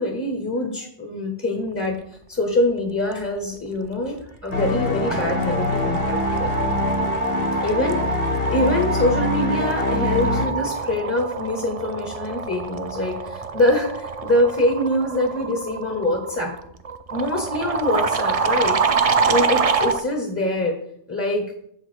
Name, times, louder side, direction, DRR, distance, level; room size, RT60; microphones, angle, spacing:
voice 1, 0.0-6.5 7.6-8.0 8.5-16.5 17.1-18.8 19.2-20.8 21.1-21.4, left 1 dB, 15° left, 2 dB, 0.9 m, -24 dB
sound 1, 4.2-4.5 4.8-20.0, right 5 dB, 40° right, 0.5 m, -26 dB
sound 2, 4.5-10.5, left 3 dB, 60° left, 1.1 m, -25 dB
7.4 x 5.3 x 6.1 m, 0.71 s
omnidirectional pair, 1.2 m